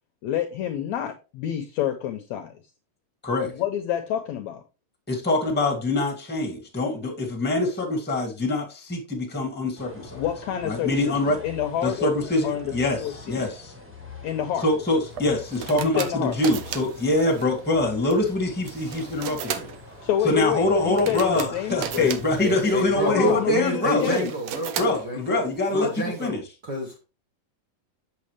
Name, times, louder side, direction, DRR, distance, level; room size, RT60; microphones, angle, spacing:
voice 1, 0.2-2.5 3.4-4.6 10.2-12.1 12.4-12.7 13.0-13.4 14.2-14.7 15.8-16.4 20.0-22.1 23.0-24.3, left 10 dB, 80° left, 1.7 m, -28 dB
voice 2, 5.1-10.2 10.6-11.4 11.8-13.7 14.6-19.7 20.2-24.2 24.8-25.9 26.2-26.4, left 2 dB, 5° left, 1.1 m, -24 dB
sound 1, 9.7-23.6, left 4 dB, 10° right, 0.6 m, -44 dB
sound 2, 15.1-26.3, right 9 dB, 80° right, 1.5 m, -37 dB
voice 3, 22.3-26.9, right 1 dB, 45° right, 1.5 m, -30 dB
7.6 x 7.2 x 3.3 m
omnidirectional pair, 4.0 m